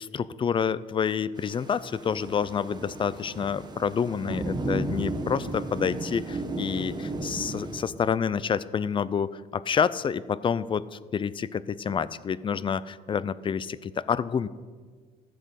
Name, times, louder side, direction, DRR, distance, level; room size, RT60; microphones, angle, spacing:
voice 1, 0.0-14.5, left 7 dB, 30° left, 18 dB, 0.5 m, -28 dB
Thunder / Rain, 1.4-7.8, right 2 dB, 25° right, 1.5 m, -34 dB
14.5 x 7.9 x 6.4 m, 1.6 s
cardioid pair, 110°, 17 cm